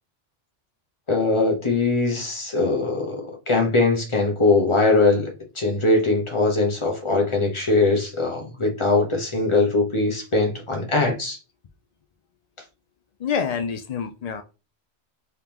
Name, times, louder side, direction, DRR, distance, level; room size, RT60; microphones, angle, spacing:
voice 1, 1.1-3.2 3.5-11.4, left 3 dB, 25° left, 0.9 m, -21 dB
voice 2, 13.2-14.4, left 6 dB, 80° left, 0.3 m, -27 dB
3.5 x 3.5 x 3.0 m
omnidirectional pair, 1.2 m